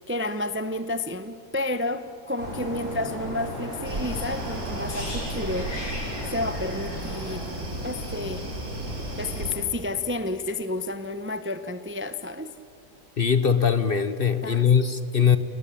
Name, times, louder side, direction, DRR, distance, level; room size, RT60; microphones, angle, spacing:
voice 1, 0.0-7.4 7.8-8.5 9.2-12.5 14.4-14.7 15.2-15.3, left 2 dB, 10° right, 11 dB, 0.6 m, -31 dB
sound 1, 2.4-9.6, equal, 55° right, 5.5 m, -36 dB
sound 2, 3.8-9.5, right 1 dB, 75° right, 4.4 m, -35 dB
sound 3, 4.9-8.7 9.0-9.2, left 1 dB, 70° left, 8.4 m, -40 dB
voice 2, 13.2-15.4, left 7 dB, 45° left, 12 dB, 1.0 m, -21 dB
29.5 x 19.0 x 8.6 m, 2.5 s
omnidirectional pair, 1.6 m